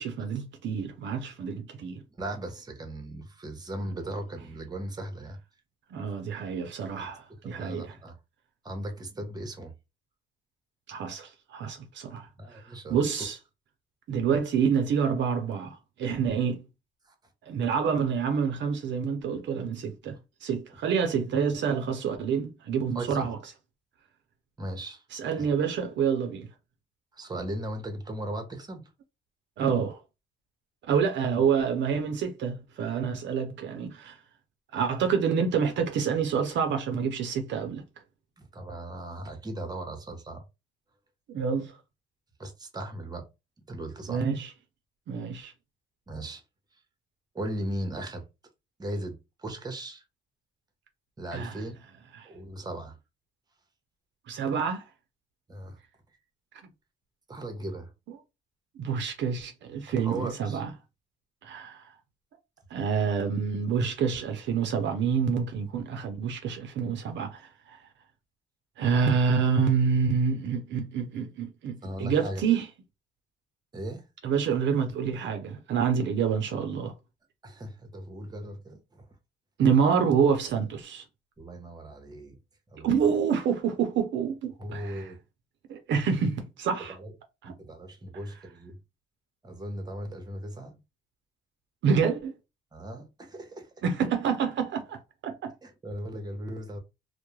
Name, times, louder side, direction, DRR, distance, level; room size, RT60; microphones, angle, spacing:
voice 1, 0.0-2.0 5.9-8.0 10.9-13.4 14.1-16.6 17.4-23.4 25.1-26.5 29.6-30.0 30.9-34.2 34.7-37.8 41.3-41.7 44.1-44.5 45.1-45.5 51.3-51.6 52.1-52.3 54.3-54.8 58.1-58.2 58.8-60.7 61.4-61.9 62.7-67.8 68.8-72.7 74.2-76.9 79.6-81.0 82.8-85.1 85.7-87.0 87.4-87.5 91.8-92.3 93.8-95.5, right 6 dB, 65° right, 0.5 m, -27 dB
voice 2, 2.2-5.4 7.0-7.1 7.4-8.2 8.6-9.7 12.4-13.3 22.9-23.3 24.6-25.0 25.4-25.5 27.1-28.8 38.4-40.4 42.4-43.3 43.7-44.2 46.1-46.4 47.3-48.2 48.8-50.0 51.2-51.7 52.2-53.0 55.5-55.8 57.3-57.9 60.0-60.6 71.8-72.4 73.7-74.0 77.4-79.1 81.4-82.4 82.7-82.9 84.6-85.2 86.9-87.1 87.4-88.8 89.4-90.8 92.7-93.7 95.6-96.8, right 1 dB, 20° right, 0.8 m, -37 dB
2.2 x 2.1 x 3.0 m
cardioid pair, 90°, 20 cm